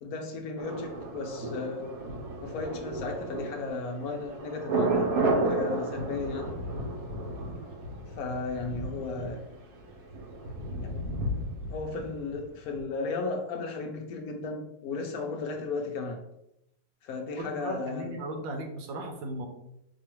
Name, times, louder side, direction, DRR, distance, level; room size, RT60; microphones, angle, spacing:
voice 1, 0.0-1.9 2.4-5.1 5.4-6.6 8.1-9.5 10.8-11.0 11.7-16.2 17.0-18.2, left 3 dB, 70° left, 3 dB, 0.9 m, -35 dB
Thunder, 0.6-12.4 12.7-12.8, right 2 dB, 65° right, 1.0 m, -33 dB
voice 2, 17.4-19.5, right 1 dB, 80° right, 2 dB, 1.5 m, -36 dB
4.8 x 2.4 x 3.0 m, 0.81 s
omnidirectional pair, 2.0 m